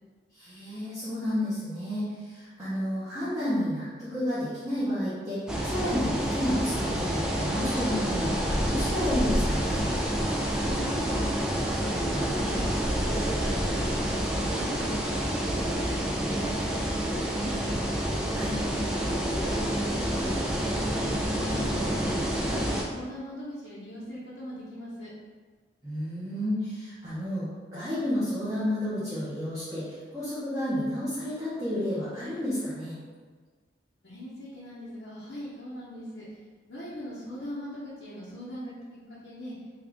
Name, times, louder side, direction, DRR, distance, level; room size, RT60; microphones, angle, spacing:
voice 1, 0.3-9.9 18.3-18.6 25.8-33.0, equal, 20° right, -12 dB, 0.8 m, -31 dB
sound 1, 5.5-22.8, right 1 dB, 5° right, 0.3 m, -28 dB
voice 2, 10.6-12.8 13.1-14.9 15.2-17.9 19.3-20.8 21.1-22.2 22.5-25.1 34.0-36.4 36.6-39.5, equal, 75° left, -11 dB, 0.8 m, -41 dB
3.5 x 2.4 x 3.4 m, 1.5 s
head